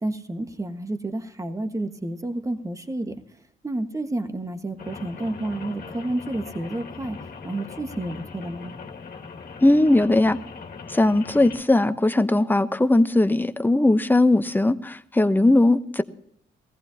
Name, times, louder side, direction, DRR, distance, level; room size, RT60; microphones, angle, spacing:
voice 1, 0.0-3.2 3.6-7.2 7.4-8.7, right 1 dB, 15° right, 7 dB, 1.5 m, -30 dB
Rain, 4.8-11.6, left 5 dB, 50° left, 2.3 m, -40 dB
voice 2, 9.6-10.4 10.9-16.0, left 2 dB, 10° left, 10 dB, 0.9 m, -19 dB
20.5 x 15.0 x 2.9 m, 0.66 s
cardioid pair, 90°, 20 cm